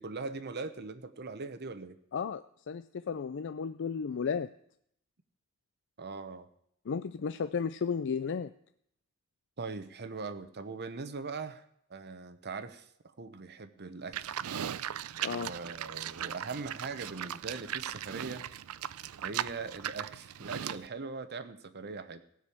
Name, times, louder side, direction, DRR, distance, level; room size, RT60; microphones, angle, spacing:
voice 1, 0.0-2.0 6.0-6.5 9.6-11.6 11.9-12.9 13.2-14.3 15.3-18.4 19.2-22.2, right 4 dB, 50° right, 10 dB, 0.9 m, -41 dB
voice 2, 2.1-4.5 6.9-8.5 15.2-15.5, left 6 dB, 55° left, 12 dB, 0.4 m, -34 dB
Livestock farm animals working animals, 14.1-20.9, right 10 dB, 80° right, 0.5 m, -38 dB
16.5 x 6.3 x 8.5 m, 0.70 s
head